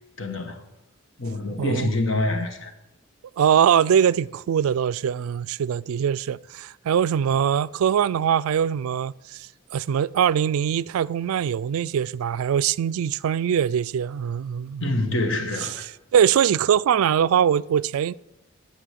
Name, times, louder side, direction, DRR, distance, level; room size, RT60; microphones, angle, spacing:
voice 1, 0.2-0.6 1.2-2.7 14.8-15.9, left 2 dB, 65° left, 1.5 m, -26 dB
voice 2, 1.6-1.9 3.4-15.0 15.8-18.1, right 8 dB, 90° right, 0.3 m, -22 dB
9.9 x 8.2 x 8.4 m
head